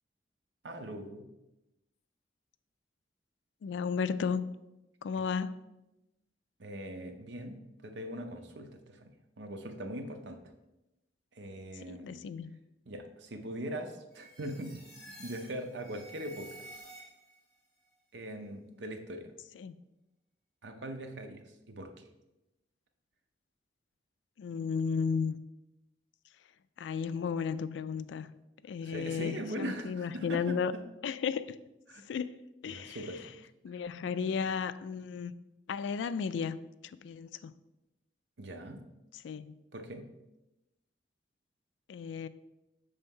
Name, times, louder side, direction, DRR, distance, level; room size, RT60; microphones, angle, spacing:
voice 1, 0.6-1.3 6.6-7.6 7.8-10.4 11.3-12.2 12.9-14.9 15.2-16.5 18.1-19.3 20.6-22.1 28.8-30.8 31.9-32.0 32.6-33.2 38.4-38.8 39.7-40.0, right 1 dB, 80° right, 0.7 m, -41 dB
voice 2, 3.6-4.4 5.0-5.6 11.8-12.6 19.6-19.7 24.4-25.4 26.8-28.3 28.6-30.7 31.0-31.6 32.1-32.3 32.6-33.0 33.6-35.3 35.7-36.6 36.8-37.5 39.2-39.5 41.9-42.3, left 6 dB, 85° left, 0.3 m, -34 dB
sound 1, 14.1-17.5, right 1 dB, 5° left, 1.4 m, -51 dB
5.6 x 3.5 x 5.4 m
head